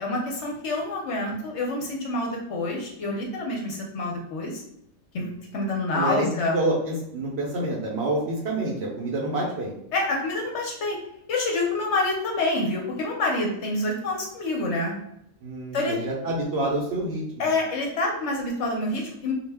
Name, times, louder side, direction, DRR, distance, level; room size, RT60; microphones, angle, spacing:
voice 1, 0.0-4.6 5.1-6.6 9.9-11.0 11.3-14.9 15.7-16.0 17.4-19.3, left 2 dB, 65° left, -1 dB, 0.8 m, -27 dB
voice 2, 5.9-6.3 6.5-9.7 15.4-17.5, right 2 dB, 60° right, -3 dB, 0.7 m, -27 dB
2.2 x 2.1 x 3.3 m, 0.74 s
omnidirectional pair, 1.4 m